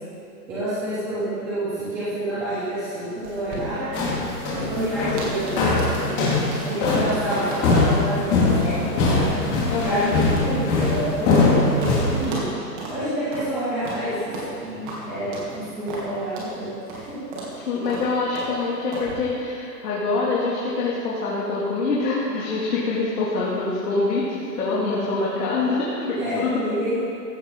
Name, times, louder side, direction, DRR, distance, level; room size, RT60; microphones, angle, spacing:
voice 1, 0.5-3.9 4.5-5.5 6.1-9.3 9.8-12.5 12.9-17.2 26.2-27.0, right 1 dB, 5° right, -12 dB, 0.6 m, -28 dB
sound 1, 3.2-11.5 11.8-12.0 12.2-12.5 12.8-13.0 13.3-13.5 13.8-14.0 14.3-14.5 14.9-15.0 15.3-15.5 15.9-16.1 16.4-16.5 16.9-17.1 17.3-17.5 17.9-18.1 18.4-18.5 18.9-19.1, right 2 dB, 30° right, 3.0 m, -34 dB
sound 2, 3.9-12.3, left 3 dB, 20° left, 2.8 m, -21 dB
voice 2, 9.7-10.1 17.5-26.6, left 3 dB, 65° left, -7 dB, 3.1 m, -25 dB
15.5 x 13.5 x 4.0 m, 2.6 s
hypercardioid pair, 165°, 50 cm